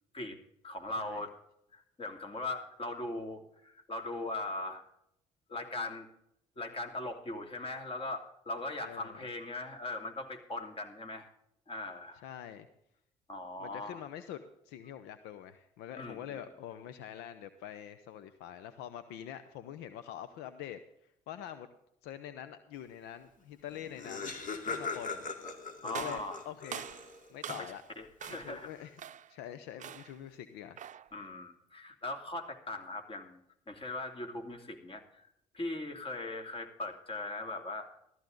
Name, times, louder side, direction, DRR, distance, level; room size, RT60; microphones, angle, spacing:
voice 1, 0.6-1.3 1.7-4.8 5.5-6.1 6.6-11.3 11.7-12.2 13.3-14.0 16.0-16.4 24.6-24.8 25.8-26.4 27.5-28.7 31.1-33.4 33.7-35.3 35.5-37.9, left 2 dB, 30° left, 4 dB, 2.9 m, -40 dB
voice 2, 8.8-9.3 12.2-12.7 13.6-20.8 21.3-21.7 22.0-24.3 24.7-25.3 25.8-26.9 27.3-27.8 28.3-29.0 29.3-30.8, left 10 dB, 75° left, 11 dB, 0.8 m, -45 dB
Laughter, 23.4-23.5 23.7-27.4, left 4 dB, 50° left, 2.5 m, -40 dB
sound 1, 25.9-27.9 28.2-28.6 29.0-29.4 29.8-30.2 30.8-31.1, right 9 dB, 45° right, 0.6 m, -44 dB
14.0 x 14.0 x 3.9 m, 0.76 s
hypercardioid pair, 55°, 17 cm